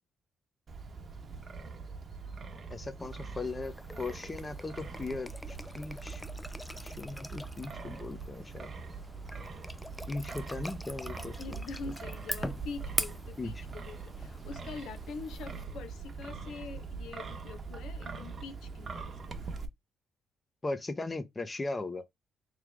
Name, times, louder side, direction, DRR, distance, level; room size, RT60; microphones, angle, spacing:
Wind, 0.7-19.7, right 4 dB, 40° right, 1.0 m, -43 dB
voice 1, 2.7-6.2 6.8-8.7 10.1-11.4 13.4-13.6 20.6-22.0, left 3 dB, 25° left, 0.8 m, -38 dB
sound 1, 3.0-15.6, left 1 dB, 5° left, 0.4 m, -43 dB
voice 2, 11.4-19.2, left 5 dB, 80° left, 0.9 m, -44 dB
3.5 x 3.3 x 3.4 m
cardioid pair, 90°, 0 cm